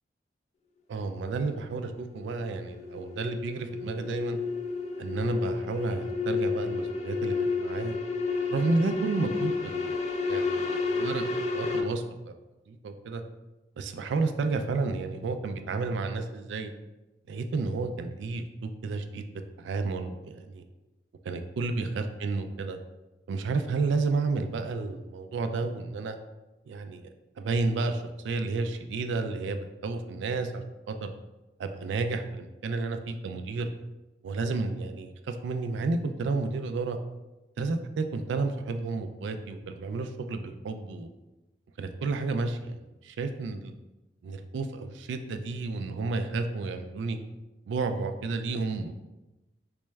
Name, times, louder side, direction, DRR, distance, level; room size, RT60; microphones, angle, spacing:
voice 1, 0.9-4.4 5.0-7.9 8.5-12.3 12.7-13.2 13.8-16.7 17.3-19.2 19.6-20.6 21.2-22.8 23.3-26.2 26.7-27.1 27.4-31.1 31.6-33.7 34.2-37.0 37.6-41.1 41.8-42.8 43.0-43.7 44.2-47.2 47.7-48.9, right 3 dB, 90° right, 7 dB, 0.3 m, -31 dB
sound 1, 1.3-11.8, left 4 dB, 35° left, 0.3 m, -31 dB
4.2 x 2.3 x 3.1 m, 1.0 s
head